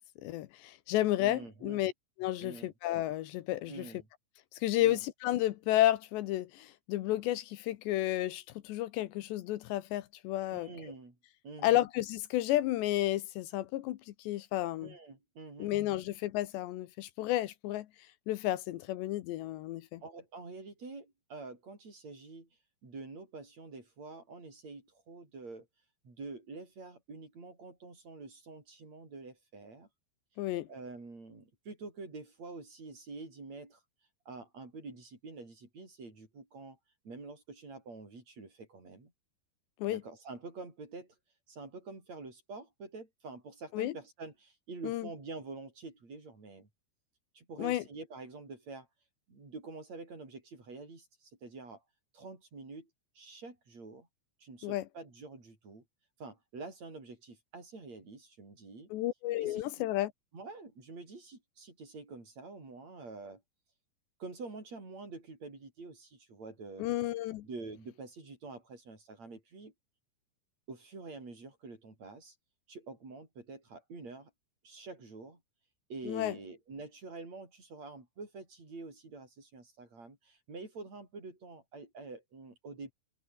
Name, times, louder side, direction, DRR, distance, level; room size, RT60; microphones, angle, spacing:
voice 1, 0.2-1.9 2.2-3.9 4.6-10.7 11.6-14.9 15.6-17.9 18.3-20.0 30.4-30.7 39.8-40.0 43.7-43.9 44.8-45.1 47.6-47.8 54.6-54.8 58.9-60.1 66.8-67.5 76.1-76.4, left 15 dB, 75° left, 2.8 m, -32 dB
voice 2, 1.2-1.8 2.4-2.7 3.7-4.1 4.8-5.0 10.5-11.2 11.4-11.8 14.8-15.7 20.0-22.5 22.8-25.7 26.0-29.9 30.7-33.8 34.3-36.8 37.0-39.1 39.9-41.1 41.5-46.7 47.3-48.9 49.3-51.8 52.1-52.9 53.1-54.1 54.4-55.8 56.2-58.9 59.4-59.9 60.3-63.4 64.2-66.9 67.4-69.7 70.7-72.4 72.7-74.3 74.6-75.4 75.9-82.9, right 3 dB, 30° right, 8.0 m, -47 dB
omnidirectional pair, 5.9 m